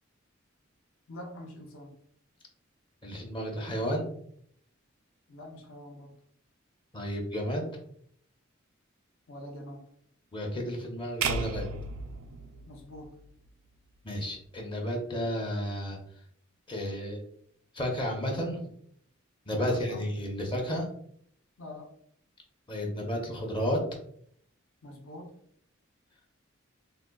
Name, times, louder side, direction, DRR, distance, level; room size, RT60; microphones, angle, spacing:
voice 1, 1.1-1.9 5.3-6.1 9.3-9.9 12.7-13.2 19.6-20.1 21.6-21.9 24.8-25.3, left 1 dB, 75° left, 0 dB, 0.7 m, -45 dB
voice 2, 3.0-4.1 6.9-7.7 10.3-11.7 14.0-16.0 16.7-17.2 17.7-18.6 19.5-20.9 22.7-23.8, equal, 25° left, 0 dB, 0.6 m, -32 dB
sound 1, 11.2-13.5, right 5 dB, 85° right, 0.3 m, -34 dB
3.7 x 2.2 x 2.2 m, 0.66 s
head